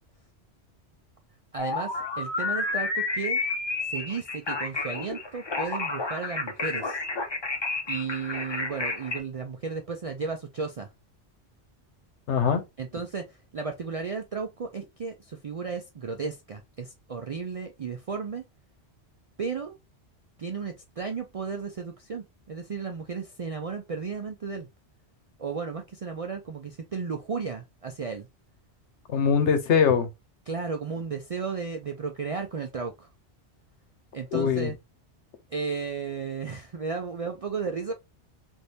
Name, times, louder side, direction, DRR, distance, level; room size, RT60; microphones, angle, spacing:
voice 1, 1.5-3.4 3.8-7.0 7.9-10.9 12.8-18.4 19.4-19.8 20.4-24.7 25.4-28.3 30.5-33.1 34.1-34.7 35.5-37.9, right 5 dB, 65° right, 0.3 m, -34 dB
sound 1, 1.6-9.2, left 3 dB, 30° left, 0.6 m, -30 dB
voice 2, 12.3-12.6 29.1-30.1 34.3-34.7, left 7 dB, 85° left, 1.1 m, -22 dB
3.4 x 2.6 x 2.7 m
omnidirectional pair, 1.2 m